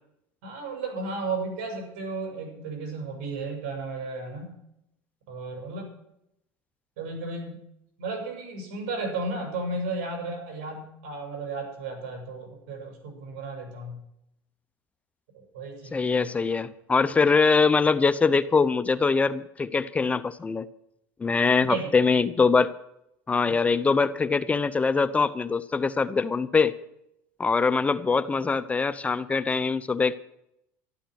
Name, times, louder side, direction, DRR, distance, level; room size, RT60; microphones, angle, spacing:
voice 1, 0.4-4.5 5.3-5.9 7.0-7.6 8.0-14.0 15.3-16.3 21.7-21.9 23.5-23.9, right 3 dB, 85° right, 2 dB, 7.0 m, -34 dB
voice 2, 15.9-20.7 21.2-22.7 23.3-26.7 27.4-30.1, left 4 dB, 15° left, 13 dB, 0.7 m, -23 dB
13.0 x 12.5 x 6.5 m, 0.79 s
supercardioid pair, 120°, 8 cm